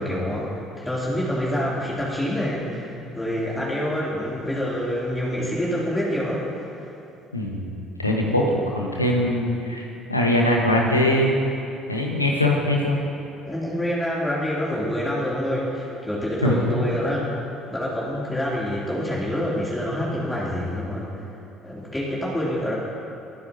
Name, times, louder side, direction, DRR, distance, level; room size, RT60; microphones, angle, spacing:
voice 1, 0.0-6.7 13.4-17.3 17.7-21.2 21.6-22.7, equal, 10° left, -6 dB, 2.8 m, -27 dB
voice 2, 7.3-7.7 8.0-11.4 11.9-13.0 16.4-16.8, left 1 dB, 90° left, 0 dB, 1.2 m, -22 dB
25.5 x 9.6 x 2.8 m, 2.7 s
figure-of-eight pair, 55°, 0 cm